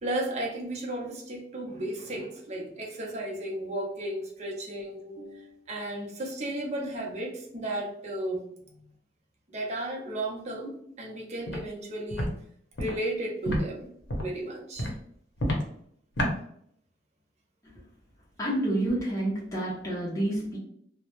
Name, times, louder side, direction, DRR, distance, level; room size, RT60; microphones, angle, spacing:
voice 1, 0.0-8.8 9.5-12.3 12.8-13.9 14.2-14.9, right 1 dB, 40° right, -1 dB, 0.6 m, -34 dB
Walk footsteps, 11.5-11.6 12.1-12.3 12.7-12.9 13.4-13.6 14.1-14.3 14.8-14.9 15.4-15.6 16.2-16.3, equal, 85° left, 0.7 m, -28 dB
voice 2, 18.4-20.6, right 1 dB, 20° left, -6 dB, 0.6 m, -28 dB
2.2 x 2.0 x 2.9 m, 0.68 s
head